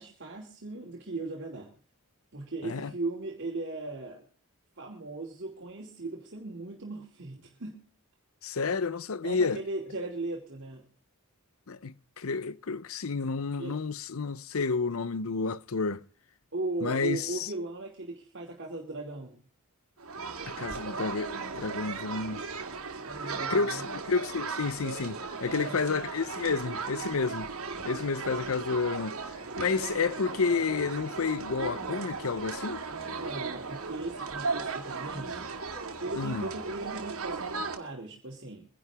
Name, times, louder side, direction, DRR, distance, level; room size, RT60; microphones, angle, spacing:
voice 1, 0.0-1.7 2.3-4.2 4.8-7.8 9.2-10.8 13.6-13.8 16.5-19.4 23.0-23.9 25.5-25.8 32.9-35.5 36.0-38.7, right 2 dB, 55° right, 2.6 m, -38 dB
voice 2, 8.4-9.6 11.7-16.0 16.8-17.5 20.4-22.4 23.5-27.5 27.8-29.2 29.6-32.8 36.2-36.5, left 4 dB, 70° left, 0.7 m, -30 dB
sound 1, 20.0-37.8, right 4 dB, 75° right, 2.3 m, -37 dB
24.0 x 11.0 x 3.5 m
head